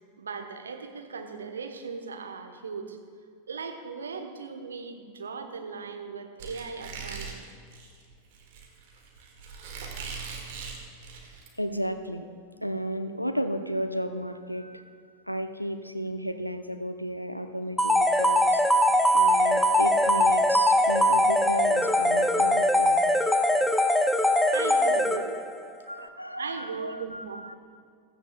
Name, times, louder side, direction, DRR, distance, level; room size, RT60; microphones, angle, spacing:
voice 1, 0.2-3.0 3.5-7.4 24.5-25.4 26.0-26.1 26.4-27.5, right 5 dB, 70° right, 5 dB, 1.0 m, -38 dB
Squeak, 6.4-11.5, right 5 dB, 50° right, 1.9 m, -40 dB
voice 2, 11.6-12.3 12.6-14.8 15.3-18.6 19.1-23.0 25.9-27.5, equal, 90° left, 9 dB, 0.6 m, -33 dB
sound 1, 17.8-25.5, left 1 dB, 5° left, 0.6 m, -22 dB
16.0 x 14.0 x 2.3 m, 2.2 s
figure-of-eight pair, 90°, 0 cm